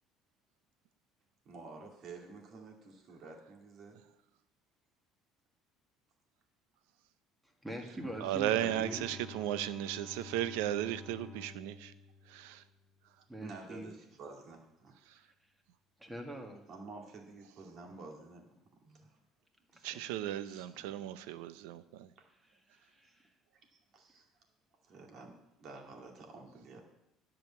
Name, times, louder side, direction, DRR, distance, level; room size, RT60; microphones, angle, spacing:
voice 1, 1.5-4.0 8.6-9.2 13.4-14.9 16.7-18.5 18.8-19.2 19.7-19.9 20.4-21.0 22.2-22.3 23.7-24.3 24.8-26.8, right 3 dB, 50° right, 2.4 m, -51 dB
voice 2, 7.6-9.1 13.3-13.9 16.0-16.6 22.7-23.3, right 1 dB, 5° right, 1.9 m, -43 dB
Bowed string instrument, 7.9-13.1, left 3 dB, 25° left, 1.3 m, -51 dB
voice 3, 8.2-11.9 12.3-12.6 19.8-22.1, right 12 dB, 90° right, 0.6 m, -35 dB
10.5 x 5.0 x 8.4 m
cardioid pair, 115°, 0 cm